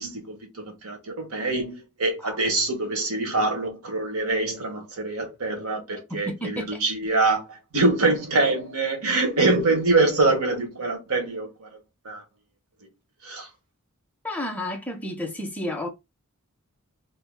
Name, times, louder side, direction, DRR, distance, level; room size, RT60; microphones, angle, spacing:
voice 1, 0.0-11.8 12.0-12.2 13.2-13.5, right 3 dB, 85° right, 1.2 m, -24 dB
voice 2, 6.1-6.8 14.2-15.9, left 1 dB, 5° left, 0.6 m, -31 dB
2.8 x 2.8 x 3.5 m
head